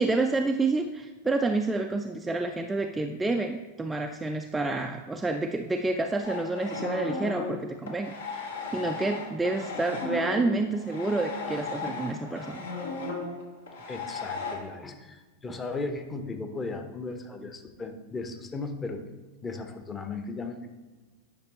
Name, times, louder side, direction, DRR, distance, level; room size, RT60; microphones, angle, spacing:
voice 1, 0.0-12.7 17.4-17.5, right 3 dB, 10° right, 5 dB, 0.3 m, -29 dB
sound 1, 6.2-14.6, left 3 dB, 65° left, 1.2 m, -35 dB
voice 2, 13.9-19.0 19.4-20.7, left 3 dB, 15° left, 6 dB, 0.8 m, -36 dB
10.5 x 5.8 x 2.9 m, 1.2 s
figure-of-eight pair, 90°, 0 cm